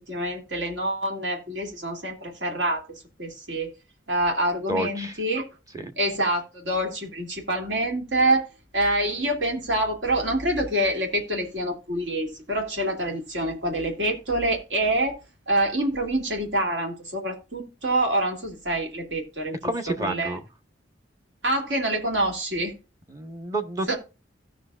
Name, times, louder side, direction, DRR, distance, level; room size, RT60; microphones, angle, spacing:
voice 1, 0.1-2.8 3.2-3.7 4.1-5.4 6.0-8.5 8.7-15.2 15.5-19.7 20.0-20.3 21.4-22.8 23.9-24.0, right 1 dB, 70° right, 2.7 m, -26 dB
voice 2, 4.7-5.2 5.7-5.9 19.6-20.4 23.1-24.0, right 1 dB, 20° right, 1.1 m, -29 dB
16.5 x 6.2 x 2.5 m
head